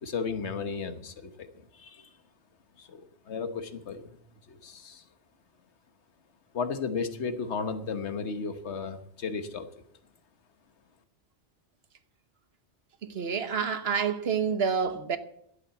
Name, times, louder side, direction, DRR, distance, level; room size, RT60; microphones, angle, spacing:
voice 1, 0.0-2.1 2.8-4.2 4.5-5.0 6.5-9.7, left 5 dB, 80° left, 1.4 m, -34 dB
voice 2, 13.0-15.2, right 6 dB, 65° right, 1.3 m, -28 dB
12.0 x 8.5 x 8.0 m
omnidirectional pair, 1.1 m